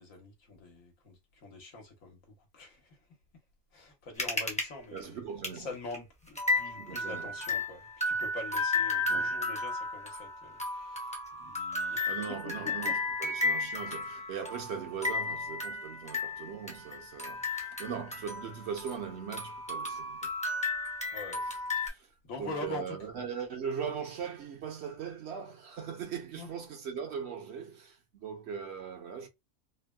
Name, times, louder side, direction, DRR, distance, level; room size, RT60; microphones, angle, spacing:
voice 1, 0.0-3.0 3.7-5.2 5.5-12.2 12.6-13.0 21.1-21.4 21.8-21.9 22.2-23.0 26.3-26.5, left 2 dB, 80° left, 1.5 m, -44 dB
sound 1, 4.2-4.7 5.0-5.1 5.4-5.6 5.9-6.0 6.4-19.1 19.3-21.9, left 3 dB, 10° left, 0.5 m, -33 dB
voice 2, 4.9-5.7 6.6-7.3 9.0-9.3 12.1-20.3 21.4-21.5 21.8-22.1 22.4-29.3, right 7 dB, 55° right, 1.0 m, -40 dB
3.4 x 2.2 x 2.2 m
omnidirectional pair, 1.4 m